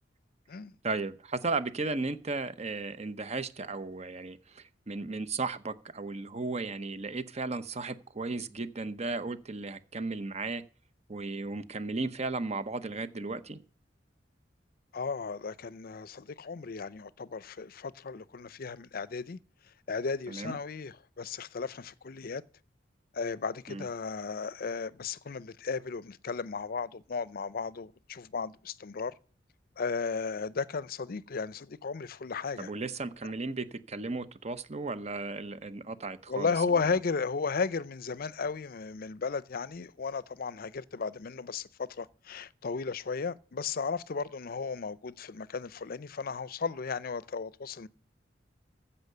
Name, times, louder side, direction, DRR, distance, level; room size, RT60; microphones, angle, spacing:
voice 1, 0.8-10.6 11.1-13.6 20.3-20.6 23.7-23.9 32.6-36.5, right 3 dB, 40° right, 0.8 m, -35 dB
voice 2, 14.9-19.4 19.9-22.4 23.1-29.1 29.8-32.7 36.3-47.9, left 5 dB, 55° left, 0.6 m, -35 dB
14.5 x 5.7 x 6.7 m
head